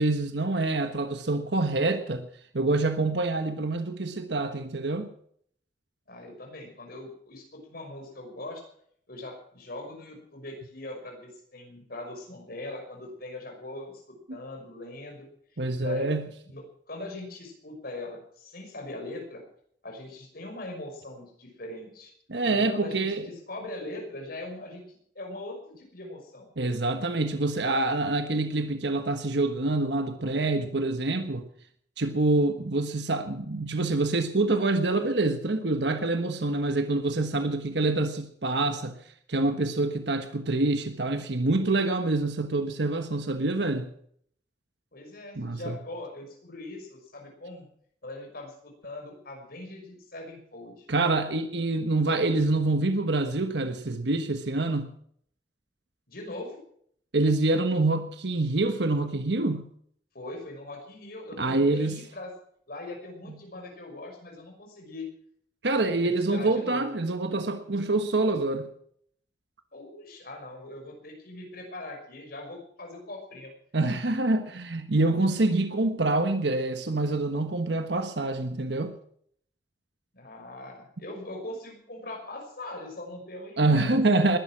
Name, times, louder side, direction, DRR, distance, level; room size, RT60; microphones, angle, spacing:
voice 1, 0.0-2.3 2.5-5.1 14.3-14.4 15.6-16.3 22.3-23.3 26.6-31.4 32.0-38.9 39.3-43.9 45.4-45.8 50.9-54.9 57.1-59.7 61.4-62.0 65.6-68.7 73.7-78.9 83.6-84.4, right 2 dB, 75° right, 7 dB, 1.3 m, -26 dB
voice 2, 6.1-8.6 9.1-15.3 15.5-16.1 16.4-19.4 19.8-22.1 22.4-26.5 44.9-47.7 48.0-50.9 56.1-56.6 60.1-62.3 62.7-65.1 65.8-66.8 69.7-73.5 80.1-84.0, left 2 dB, 55° left, 2 dB, 6.0 m, -41 dB
20.5 x 11.5 x 6.2 m, 0.64 s
head